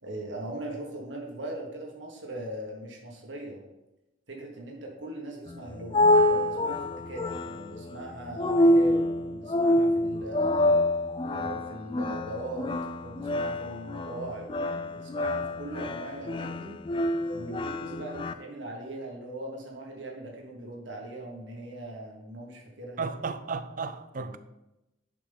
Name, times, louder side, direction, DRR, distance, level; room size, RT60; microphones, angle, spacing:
voice 1, 0.0-3.6 4.3-10.7 11.2-12.7 13.0-16.8 17.3-23.1 24.2-24.4, right 1 dB, 80° right, 1.6 m, -40 dB
sound 1, 5.5-18.3, left 1 dB, 25° left, 0.3 m, -26 dB
voice 2, 23.0-24.4, right 4 dB, 45° right, 0.5 m, -34 dB
10.5 x 5.1 x 3.6 m
head